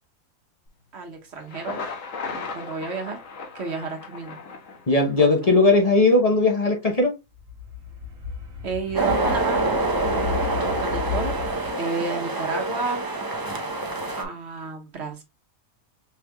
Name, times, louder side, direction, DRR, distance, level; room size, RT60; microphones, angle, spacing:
voice 1, 0.9-1.8 2.3-3.2 3.5-4.4 5.2-5.3 8.6-9.7 10.1-11.4 11.8-13.1 14.2-15.2, right 4 dB, 50° right, 1.4 m, -31 dB
Thunder, 1.3-5.3, left 4 dB, 70° left, 1.4 m, -36 dB
voice 2, 4.9-7.2, left 2 dB, 35° left, 0.7 m, -18 dB
sound 1, 7.3-11.7, left 6 dB, 70° right, 1.6 m, -33 dB
sound 2, 8.9-14.2, right 2 dB, 30° right, 0.4 m, -26 dB
5.6 x 3.3 x 2.2 m
omnidirectional pair, 1.5 m